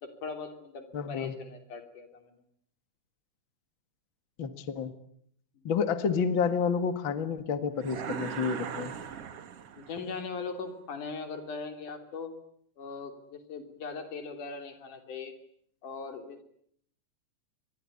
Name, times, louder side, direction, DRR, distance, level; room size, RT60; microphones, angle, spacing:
voice 1, 0.0-2.4 5.6-5.7 9.8-12.3 12.8-15.3 15.8-16.4, left 4 dB, 85° left, 7 dB, 4.6 m, -40 dB
voice 2, 0.9-1.3 4.4-4.9 5.6-8.9, left 6 dB, 45° left, 10 dB, 2.2 m, -29 dB
sound 1, 7.8-10.1, right 8 dB, 55° right, 2.4 m, -39 dB
26.0 x 22.5 x 9.9 m, 0.68 s
omnidirectional pair, 3.5 m